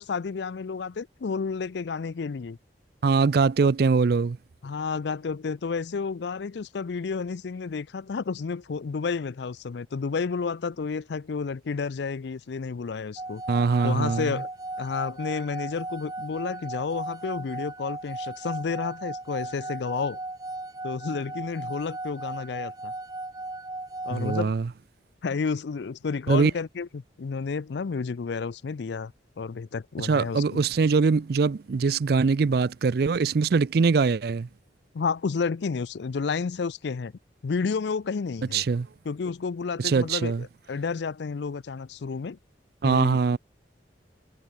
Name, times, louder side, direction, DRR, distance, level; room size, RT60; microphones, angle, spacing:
voice 1, 0.0-2.6 3.6-3.7 4.6-13.4 13.8-14.5 14.8-20.2 20.8-22.9 24.0-24.6 25.2-29.1 29.4-30.6 34.9-37.1 37.4-38.6 39.0-42.4 42.8-43.2, left 5 dB, 65° left, 0.4 m, -31 dB
voice 2, 3.0-4.4 13.5-14.4 24.1-24.7 26.3-26.5 30.0-34.5 38.5-38.9 39.8-40.4 42.8-43.4, right 4 dB, 55° right, 0.4 m, -22 dB
sound 1, 13.2-24.4, right 2 dB, 20° right, 2.1 m, -36 dB
head